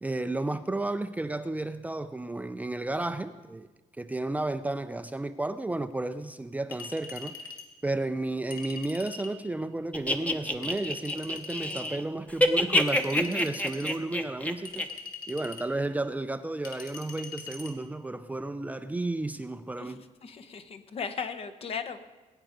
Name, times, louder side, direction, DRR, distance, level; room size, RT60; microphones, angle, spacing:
voice 1, 0.0-3.7 4.0-7.3 7.8-14.9 15.3-20.0, right 2 dB, 10° right, 10 dB, 0.4 m, -32 dB
Chink clink, 6.7-7.7 8.5-9.4 10.6-11.9 12.8-14.0 14.6-15.7 16.6-17.7, left 4 dB, 35° left, 2.2 m, -43 dB
sound 1, 9.9-12.0 12.3-14.8, left 1 dB, 10° left, 0.9 m, -27 dB
voice 2, 20.2-22.0, left 6 dB, 50° left, 9 dB, 1.0 m, -36 dB
20.5 x 9.0 x 5.1 m, 1.2 s
cardioid pair, 125°, 13 cm